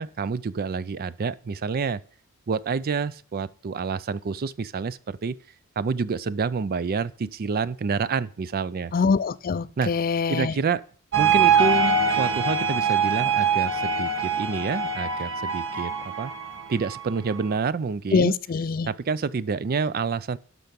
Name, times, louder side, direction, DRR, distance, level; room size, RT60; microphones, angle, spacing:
voice 1, 0.0-2.0 2.5-5.4 5.8-8.9 9.8-9.9 10.3-10.8 11.2-15.9 16.2-16.3 16.7-18.3 18.8-20.4, right 5 dB, 45° right, 0.4 m, -28 dB
voice 2, 8.9-10.5 18.1-18.9, left 5 dB, 40° left, 0.4 m, -24 dB
sound 1, 11.1-17.5, right 5 dB, 60° right, 1.4 m, -24 dB
12.0 x 5.7 x 5.2 m
head